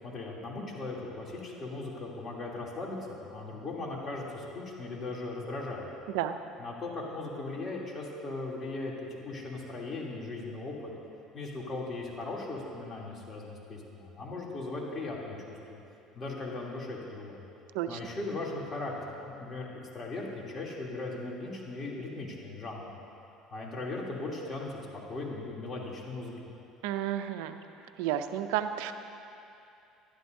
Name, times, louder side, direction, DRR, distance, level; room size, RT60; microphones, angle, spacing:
voice 1, 0.0-5.9 6.6-10.9 11.3-15.6 16.1-17.4 17.9-19.7 19.9-22.8 23.5-24.7 25.1-26.3, left 2 dB, 35° left, -3 dB, 3.0 m, -38 dB
voice 2, 26.8-27.6 28.0-28.9, right 11 dB, 80° right, 9 dB, 0.5 m, -31 dB
20.0 x 12.0 x 2.7 m, 2.7 s
hypercardioid pair, 80°, 0 cm